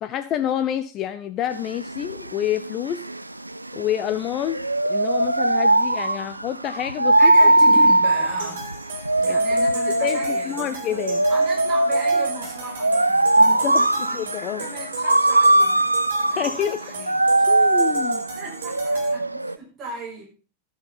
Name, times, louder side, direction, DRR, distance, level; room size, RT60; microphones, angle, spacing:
voice 1, 0.0-3.0 3.7-4.6 4.9-7.3 9.3-9.4 10.0-11.2 13.4-13.9 14.1-14.7 16.4-16.8 17.5-18.2, left 10 dB, 35° left, 10 dB, 0.8 m, -28 dB
sound 1, 1.5-19.6, right 1 dB, 85° right, 0.4 m, -20 dB
voice 2, 7.2-8.7 9.2-11.0 11.3-15.8 16.2-17.1 18.3-20.2, right 3 dB, 25° right, -3 dB, 6.7 m, -36 dB
sound 2, 8.4-19.1, right 3 dB, 60° right, 4.6 m, -36 dB
12.5 x 7.5 x 5.4 m, 0.35 s
figure-of-eight pair, 90°, 0 cm